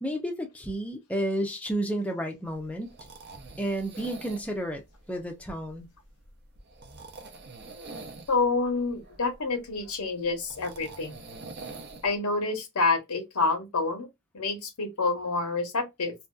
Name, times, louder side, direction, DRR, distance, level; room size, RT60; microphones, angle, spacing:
voice 1, 0.0-2.9 3.6-4.8 5.1-5.9, right 1 dB, 5° left, 0.5 m, -31 dB
sound 1, 2.5-12.1, right 3 dB, 45° right, 0.6 m, -46 dB
voice 2, 8.3-11.2 12.0-14.1 14.3-16.1, left 3 dB, 90° left, 1.0 m, -28 dB
2.6 x 2.3 x 2.2 m
head